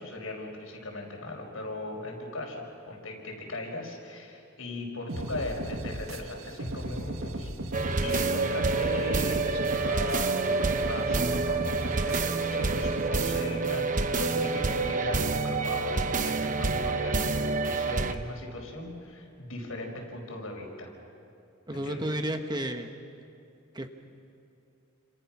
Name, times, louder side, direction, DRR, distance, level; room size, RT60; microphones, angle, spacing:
voice 1, 0.0-7.5 8.0-20.9 21.7-22.1, left 2 dB, 80° left, 1 dB, 5.5 m, -38 dB
sound 1, 5.1-13.1, right 1 dB, 80° right, 1.8 m, -36 dB
sound 2, 7.7-18.1, right 3 dB, 40° right, 1.0 m, -28 dB
voice 2, 21.7-22.9 23.7-23.9, right 1 dB, 20° right, 6 dB, 1.3 m, -32 dB
30.0 x 27.5 x 6.1 m, 2.6 s
head